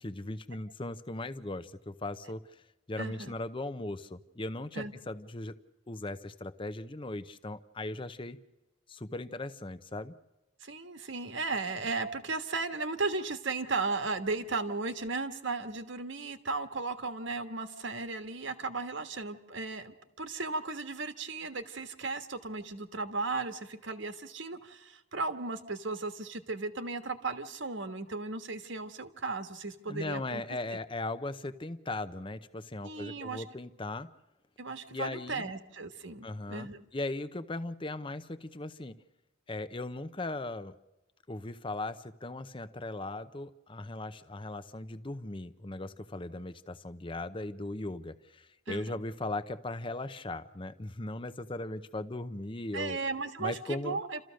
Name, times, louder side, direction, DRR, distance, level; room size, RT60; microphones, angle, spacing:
voice 1, 0.0-5.5 5.9-8.4 8.9-10.1 29.9-34.1 34.9-35.5 36.2-38.9 39.5-40.8 41.3-53.0 53.4-54.0, left 2 dB, 25° left, 11 dB, 0.7 m, -38 dB
voice 2, 3.0-3.3 4.7-4.9 10.6-30.4 32.8-33.4 34.6-36.9 48.7-49.0 52.7-54.2, right 3 dB, 65° right, 9 dB, 1.4 m, -36 dB
29.0 x 14.0 x 6.4 m, 1.0 s
head